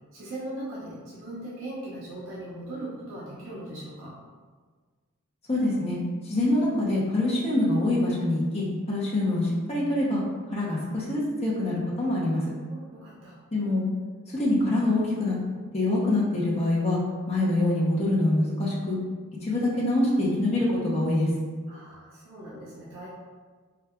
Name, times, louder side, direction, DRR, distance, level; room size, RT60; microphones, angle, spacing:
voice 1, 0.1-4.1 12.7-13.3 21.7-23.1, right 1 dB, 70° right, -7 dB, 0.7 m, -39 dB
voice 2, 5.5-6.0 6.2-10.2 10.5-12.5 13.5-13.9 14.3-15.4 15.7-17.0 17.3-19.0 19.4-21.3, left 1 dB, 30° left, -6 dB, 0.7 m, -25 dB
4.7 x 2.4 x 2.2 m, 1.5 s
head